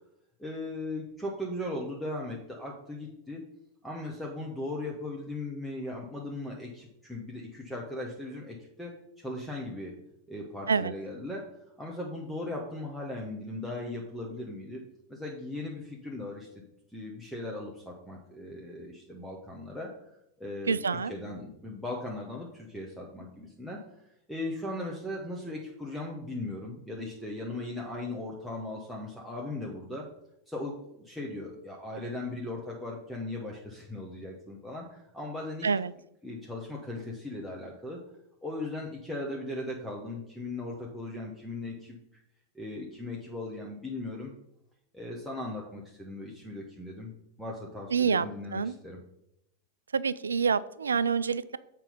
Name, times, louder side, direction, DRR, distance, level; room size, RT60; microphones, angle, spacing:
voice 1, 0.4-3.4 3.8-9.9 10.3-11.5 11.8-14.8 15.1-16.5 16.9-19.9 20.4-20.8 21.1-23.8 24.3-30.1 30.5-35.7 36.2-38.0 38.4-42.2 42.5-44.3 44.9-47.1 47.4-49.0, left 2 dB, ahead, -2 dB, 1.1 m, -38 dB
voice 2, 20.7-21.1 35.6-35.9 47.9-48.8 49.9-51.6, right 6 dB, 70° right, 17 dB, 0.3 m, -27 dB
7.4 x 4.6 x 5.4 m, 0.78 s
figure-of-eight pair, 90°, 0 cm